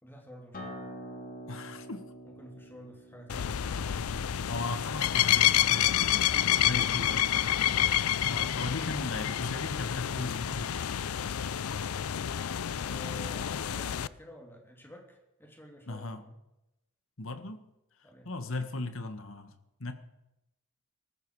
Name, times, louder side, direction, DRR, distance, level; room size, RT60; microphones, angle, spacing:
voice 1, 0.0-0.9 2.2-3.5 12.9-16.4 18.0-18.3, equal, 10° left, 1 dB, 3.2 m, -50 dB
Acoustic guitar, 0.5-5.7, equal, 40° left, 2.9 m, -47 dB
voice 2, 1.5-2.0 4.1-10.9 15.9-16.2 17.2-17.6 18.2-19.5 19.8-19.9, left 2 dB, 65° left, 9 dB, 1.6 m, -38 dB
sound 1, 3.3-14.1, left 11 dB, 85° left, 0.5 m, -28 dB
19.5 x 14.5 x 4.9 m, 0.90 s
head